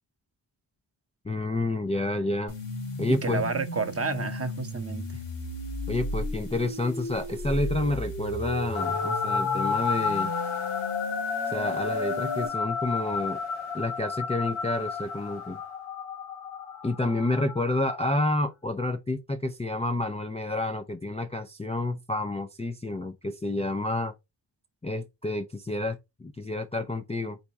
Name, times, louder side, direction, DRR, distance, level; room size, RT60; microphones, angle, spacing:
voice 1, 1.2-2.5 3.0-3.4 5.9-10.3 11.5-13.4 13.7-15.6 16.8-24.1 24.8-27.4, left 2 dB, 15° left, 0.4 m, -29 dB
sound 1, 2.5-12.5, left 2 dB, 70° left, 2.2 m, -34 dB
voice 2, 3.1-5.2, right 4 dB, 30° right, 0.7 m, -30 dB
sound 2, 8.7-18.2, left 5 dB, 85° left, 1.0 m, -32 dB
4.1 x 2.2 x 4.6 m
cardioid pair, 65°, 46 cm